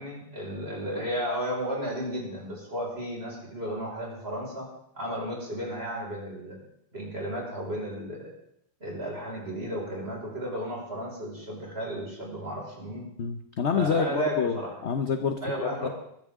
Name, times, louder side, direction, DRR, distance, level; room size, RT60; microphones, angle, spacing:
voice 1, 0.0-4.7 4.9-6.6 6.9-8.3 8.8-13.1 13.7-14.7 15.4-15.9, equal, 30° right, -3 dB, 5.6 m, -33 dB
voice 2, 13.2-15.9, left 6 dB, 50° left, 7 dB, 0.8 m, -28 dB
22.0 x 14.0 x 3.7 m, 0.74 s
omnidirectional pair, 2.2 m